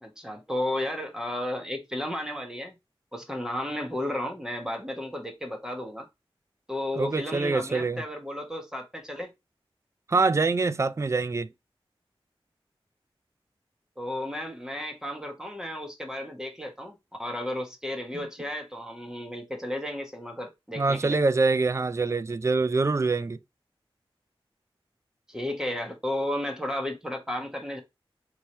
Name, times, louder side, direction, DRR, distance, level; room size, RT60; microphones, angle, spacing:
voice 1, 0.0-2.7 3.1-6.1 6.7-9.3 14.0-21.2 25.3-27.8, left 1 dB, 5° right, 1.1 m, -33 dB
voice 2, 7.0-8.0 10.1-11.5 18.1-18.3 20.8-23.4, right 3 dB, 30° right, 0.3 m, -25 dB
4.4 x 3.1 x 3.2 m
wide cardioid pair, 50°, 10 cm